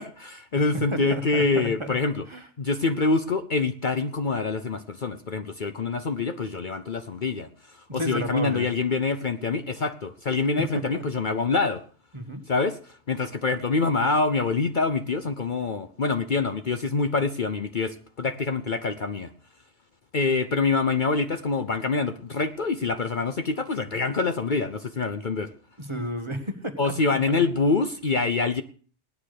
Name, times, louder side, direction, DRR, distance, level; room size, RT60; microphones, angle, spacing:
voice 1, 0.0-2.2 2.6-11.8 12.5-19.3 20.1-25.5 26.8-28.6, left 4 dB, 45° left, 9 dB, 0.9 m, -26 dB
voice 2, 0.5-1.9 2.3-2.5 7.9-8.7 10.6-11.0 12.1-12.4 25.8-27.4, equal, 25° right, 8 dB, 1.5 m, -32 dB
17.0 x 9.9 x 6.6 m, 0.43 s
omnidirectional pair, 1.2 m